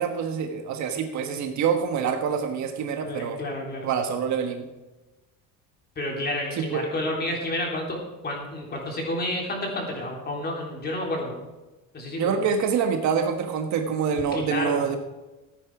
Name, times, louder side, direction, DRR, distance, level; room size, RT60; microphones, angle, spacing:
voice 1, 0.0-3.4 3.8-4.7 6.6-6.8 12.2-15.0, right 6 dB, 55° right, 5 dB, 1.4 m, -26 dB
voice 2, 3.0-3.9 6.0-11.3 11.9-12.3 14.3-14.8, left 1 dB, 30° left, 0 dB, 3.5 m, -30 dB
15.0 x 9.2 x 4.8 m, 1.1 s
cardioid pair, 145°, 35 cm